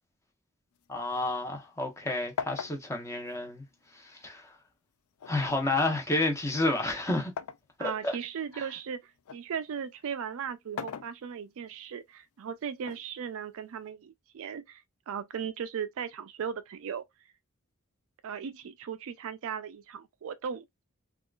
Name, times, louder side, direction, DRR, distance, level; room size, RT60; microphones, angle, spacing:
sound 1, 0.7-2.0 2.4-4.3 5.2-7.7 8.2-9.5 10.5-11.7 12.8-13.8, left 7 dB, 70° left, 0.4 m, -42 dB
voice 1, 0.9-3.6 4.2-4.5 5.3-7.3 7.8-8.2, left 2 dB, 15° left, 0.8 m, -30 dB
voice 2, 7.8-17.0 18.2-20.8, right 7 dB, 65° right, 0.4 m, -37 dB
3.6 x 2.4 x 2.3 m
head